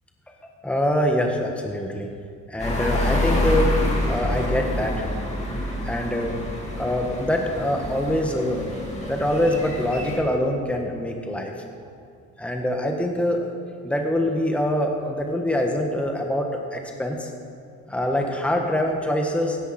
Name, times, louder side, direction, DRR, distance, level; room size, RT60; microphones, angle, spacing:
voice 1, 0.6-2.1 2.5-3.7 4.0-4.9 5.8-6.4 6.7-8.6 9.1-11.5 12.4-13.4 13.8-17.3 17.9-19.6, left 1 dB, 5° left, 2 dB, 1.3 m, -24 dB
sound 1, 2.6-10.2, left 1 dB, 20° left, 2.9 m, -27 dB
16.5 x 10.5 x 4.3 m, 2.3 s
cardioid pair, 90°, 30 cm